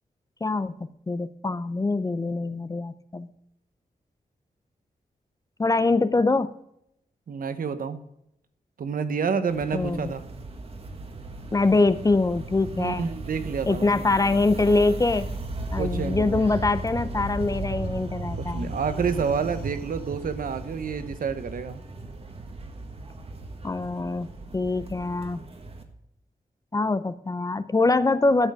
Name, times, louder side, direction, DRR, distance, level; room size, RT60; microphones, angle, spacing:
voice 1, 0.4-3.3 5.6-6.5 9.7-10.1 11.5-13.1 13.7-15.3 15.7-18.7 23.6-25.4 26.7-28.5, left 3 dB, 25° left, 14 dB, 0.5 m, -24 dB
voice 2, 7.3-8.0 8.8-10.2 12.7-14.1 15.8-16.7 18.4-21.8, right 6 dB, 70° right, 10 dB, 1.0 m, -29 dB
sound 1, 9.5-25.8, right 2 dB, 40° right, 1.4 m, -36 dB
12.0 x 7.9 x 4.8 m, 0.79 s
wide cardioid pair, 150°, 15 cm